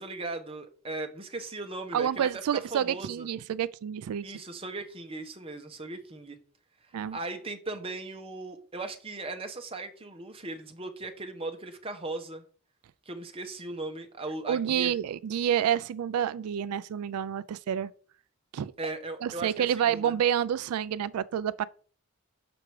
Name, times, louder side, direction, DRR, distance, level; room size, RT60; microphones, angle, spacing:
voice 1, 0.0-3.3 4.2-6.4 7.1-12.4 13.1-15.0 18.8-20.2, right 2 dB, 25° right, 0.9 m, -38 dB
voice 2, 1.9-4.2 6.9-7.2 14.5-17.9 18.5-18.7 19.2-21.6, right 9 dB, 90° right, 0.3 m, -28 dB
7.0 x 4.8 x 4.7 m
head